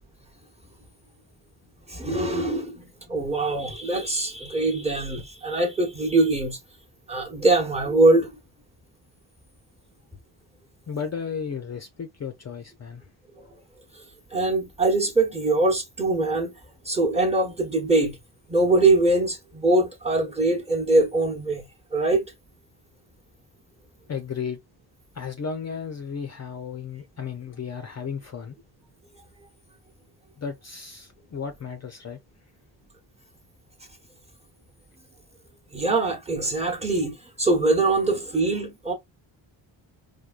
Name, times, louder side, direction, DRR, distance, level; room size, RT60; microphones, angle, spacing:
voice 1, 1.9-6.6 7.1-8.4 13.4-13.5 13.9-14.0 14.3-16.5 16.8-18.2 18.5-21.6 21.9-22.3 35.7-38.9, right 2 dB, 15° right, 1.1 m, -23 dB
voice 2, 10.9-13.0 24.1-24.6 25.1-28.6 30.4-32.2, left 6 dB, 35° left, 0.5 m, -34 dB
4.5 x 2.2 x 2.4 m
cardioid pair, 110°, 46 cm